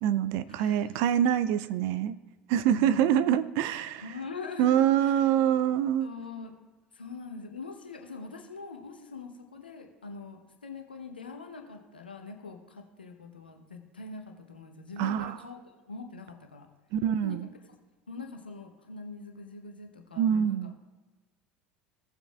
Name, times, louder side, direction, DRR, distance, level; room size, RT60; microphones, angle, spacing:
voice 1, 0.0-2.1 2.5-4.0 4.6-6.1 15.0-15.4 16.9-17.5 20.2-20.7, right 10 dB, 55° right, 14 dB, 0.4 m, -25 dB
voice 2, 0.6-0.9 2.7-3.3 4.0-5.4 6.0-6.5 6.9-15.6 15.9-16.7 17.2-17.5 18.1-20.7, left 4 dB, 85° left, 4 dB, 1.0 m, -43 dB
17.0 x 7.1 x 2.3 m, 1.2 s
figure-of-eight pair, 70°, 5 cm